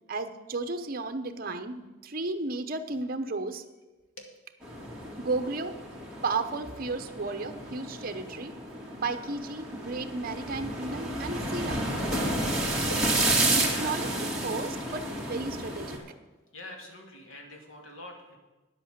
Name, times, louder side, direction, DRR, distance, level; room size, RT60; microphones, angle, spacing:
voice 1, 0.1-3.6 5.2-5.8 6.2-8.5 8.9-11.8 13.5-14.1 14.4-16.0, right 3 dB, 50° right, 8 dB, 0.9 m, -33 dB
sound 1, 4.6-16.0, right 1 dB, 5° right, 2.2 m, -31 dB
voice 2, 13.6-14.3 16.5-18.4, left 2 dB, 85° left, 1 dB, 2.4 m, -44 dB
10.0 x 8.2 x 7.4 m, 1.2 s
head